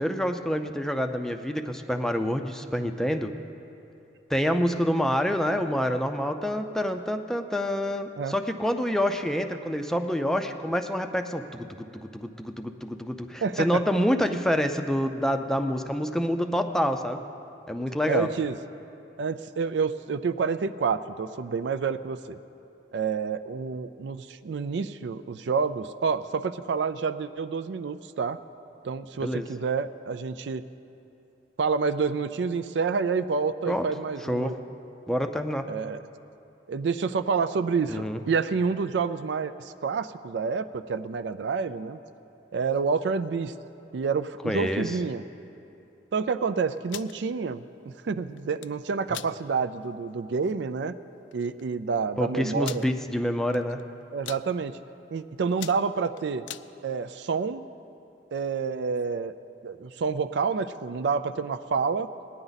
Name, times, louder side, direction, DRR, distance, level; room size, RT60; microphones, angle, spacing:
voice 1, 0.0-3.3 4.3-17.2 17.7-18.3 29.2-29.4 33.7-33.9 34.2-34.5 35.1-35.6 37.9-38.2 44.4-44.8 52.2-53.8, equal, 5° left, 6 dB, 0.5 m, -27 dB
voice 2, 13.4-13.8 18.1-18.6 19.2-22.4 22.9-28.4 28.8-30.6 31.6-34.5 35.7-36.0 36.7-42.0 42.5-43.5 43.9-45.2 46.1-47.6 48.0-50.9 51.3-52.9 54.1-54.8 55.1-56.4 56.8-57.6 58.3-59.3 59.6-62.1, right 5 dB, 70° right, 11 dB, 0.4 m, -28 dB
sound 1, 46.8-47.1 48.4-48.7 49.1-49.3 49.8-49.9 50.3-50.5 51.3-51.4 51.6-51.7 52.6-52.9 53.5-53.8 54.1-54.4 55.0-55.2 55.5-56.7, left 12 dB, 85° left, 0.3 m, -39 dB
19.0 x 9.9 x 4.0 m, 2.8 s
head